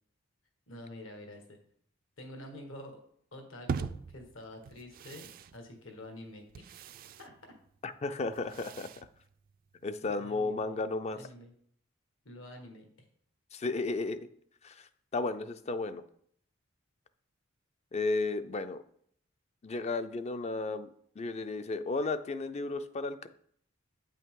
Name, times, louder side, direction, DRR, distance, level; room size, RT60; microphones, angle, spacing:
voice 1, 0.7-1.6 2.2-3.0 3.3-6.5 7.2-7.5 10.0-10.8 11.1-11.5 12.2-12.9, left 1 dB, 80° left, 4 dB, 1.5 m, -48 dB
sound 1, 3.7-9.9, right 5 dB, 45° right, 0.3 m, -43 dB
voice 2, 7.8-8.9 9.8-11.2 13.5-14.2 14.6-16.0 17.9-18.8 19.6-20.9 21.2-23.3, left 3 dB, 35° left, 11 dB, 0.4 m, -33 dB
8.4 x 5.6 x 3.7 m, 0.65 s
head